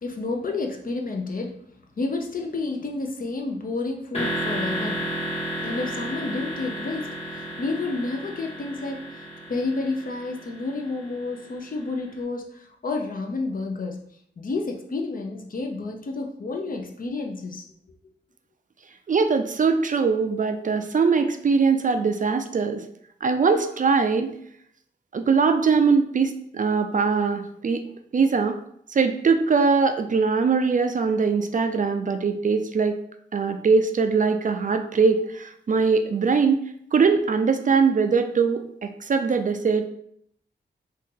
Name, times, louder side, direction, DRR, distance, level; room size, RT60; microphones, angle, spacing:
voice 1, 0.0-1.6 2.0-5.1 5.6-14.0 14.4-17.6, left 3 dB, 50° left, 2 dB, 0.6 m, -30 dB
sound 1, 4.1-11.9, right 1 dB, 30° left, 1.2 m, -32 dB
voice 2, 19.1-22.8 23.2-24.4 25.1-27.8 28.1-28.6 28.9-33.0 33.3-36.6 36.9-39.9, right 5 dB, 45° right, 7 dB, 0.4 m, -21 dB
2.8 x 2.6 x 3.7 m, 0.69 s
cardioid pair, 55°, 19 cm